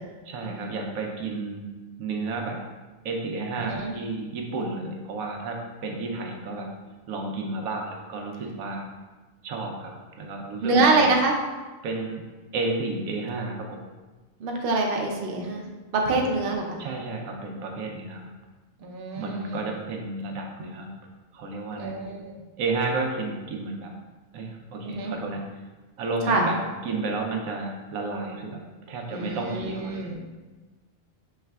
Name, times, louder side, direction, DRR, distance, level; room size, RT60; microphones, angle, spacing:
voice 1, 0.3-1.6 2.0-2.6 3.0-6.7 7.1-8.9 9.4-11.0 11.8-12.2 12.5-13.8 16.1-16.2 16.8-18.3 19.2-20.9 21.3-21.9 22.6-23.9 24.3-25.5 26.0-28.6 28.9-30.1, right 3 dB, 85° right, 1 dB, 1.1 m, -31 dB
voice 2, 10.6-11.3 14.4-15.6 15.9-16.8 18.8-19.7 21.8-22.3 24.8-25.1 26.3-26.5 29.1-30.2, right 3 dB, 55° right, 0 dB, 0.7 m, -25 dB
5.6 x 3.2 x 2.3 m, 1.2 s
omnidirectional pair, 1.5 m